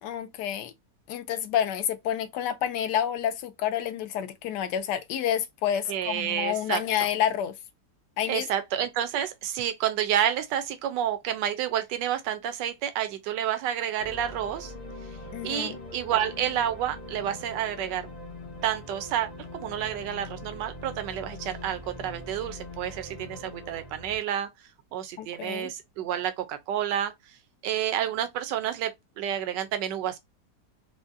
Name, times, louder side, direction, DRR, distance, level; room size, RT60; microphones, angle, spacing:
voice 1, 0.0-0.7 1.1-7.5 8.2-8.4 15.3-15.8 25.2-25.7, left 10 dB, 75° left, 1.2 m, -29 dB
voice 2, 5.9-6.8 8.3-14.7 15.4-18.1 18.6-19.3 19.6-24.5 24.9-27.1 27.6-30.2, right 10 dB, 85° right, 1.3 m, -29 dB
sound 1, 14.0-24.2, left 1 dB, 50° left, 0.5 m, -42 dB
4.8 x 2.1 x 2.6 m
omnidirectional pair, 1.9 m